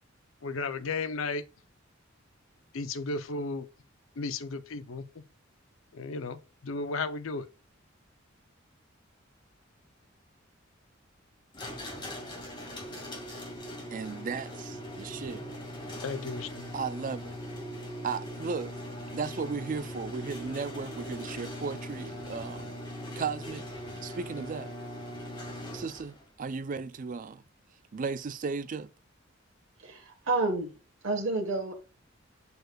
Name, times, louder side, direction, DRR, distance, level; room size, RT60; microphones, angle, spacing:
voice 1, 0.4-1.5 2.7-3.7 4.2-5.2 5.9-7.5 16.0-16.7, left 3 dB, 80° left, 0.6 m, -34 dB
sound 1, 11.5-26.2, equal, 25° left, 1.9 m, -40 dB
voice 2, 13.9-15.5 16.7-17.4 18.0-18.8 19.1-22.8 23.2-23.7 24.0-24.7 25.7-27.4 27.9-28.9, right 5 dB, 40° right, 0.4 m, -35 dB
voice 3, 29.8-30.7 31.0-31.7, right 3 dB, 75° right, 1.2 m, -29 dB
6.7 x 6.4 x 2.3 m
head